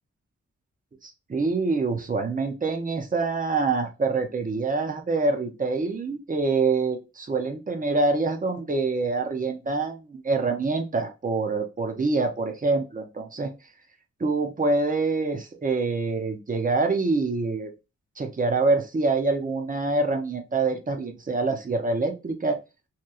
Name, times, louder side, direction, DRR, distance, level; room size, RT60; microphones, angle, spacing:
voice 1, 1.0-13.5 14.2-17.7 18.2-22.6, right 3 dB, 30° right, 5 dB, 0.5 m, -25 dB
2.9 x 2.2 x 2.3 m, 0.27 s
wide cardioid pair, 130°, 29 cm